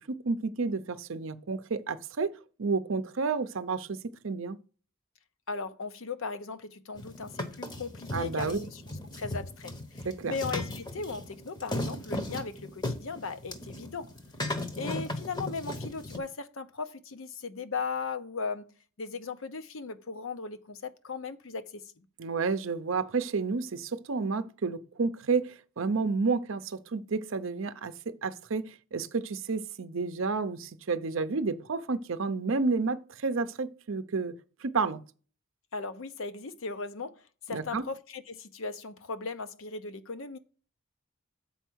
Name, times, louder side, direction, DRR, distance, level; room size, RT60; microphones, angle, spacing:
voice 1, 0.0-4.6 8.1-8.6 10.0-10.3 22.2-34.4 34.6-35.0 37.5-37.8, right 4 dB, 60° right, 0.6 m, -31 dB
voice 2, 5.5-8.8 9.1-14.1 14.7-18.7 19.0-22.0 35.7-40.4, left 4 dB, 65° left, 0.7 m, -37 dB
sound 1, 6.9-16.2, left 1 dB, 20° left, 0.8 m, -37 dB
7.0 x 4.6 x 6.1 m
head